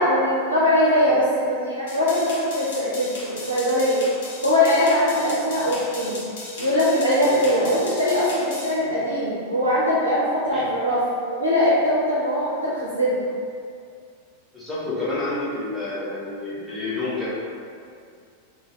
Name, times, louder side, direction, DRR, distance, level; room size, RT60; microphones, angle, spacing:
voice 1, 0.0-4.0 4.4-6.2 6.6-11.0 11.4-13.2, left 1 dB, 85° right, -9 dB, 0.5 m, -21 dB
sound 1, 1.9-8.7, left 2 dB, 55° left, 0.8 m, -37 dB
voice 2, 14.5-17.3, left 2 dB, ahead, -10 dB, 1.0 m, -29 dB
2.6 x 2.5 x 3.1 m, 2.3 s
figure-of-eight pair, 90°, 0 cm